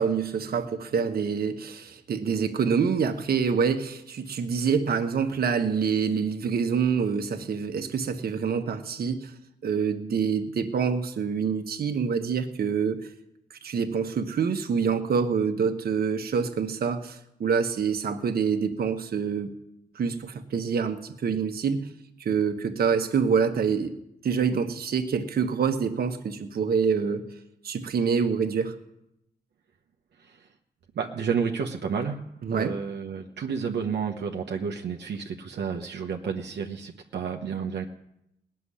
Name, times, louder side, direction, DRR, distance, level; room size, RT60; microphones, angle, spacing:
voice 1, 0.0-9.3 9.6-13.0 13.5-19.5 19.9-21.9 22.2-23.9 24.2-27.2 27.6-28.7 32.4-32.7, right 6 dB, 65° right, 6 dB, 1.3 m, -26 dB
voice 2, 30.2-30.5 30.9-32.2 32.5-37.9, right 6 dB, 80° right, 2 dB, 1.1 m, -31 dB
18.5 x 6.9 x 9.9 m, 0.83 s
wide cardioid pair, 125°, 17 cm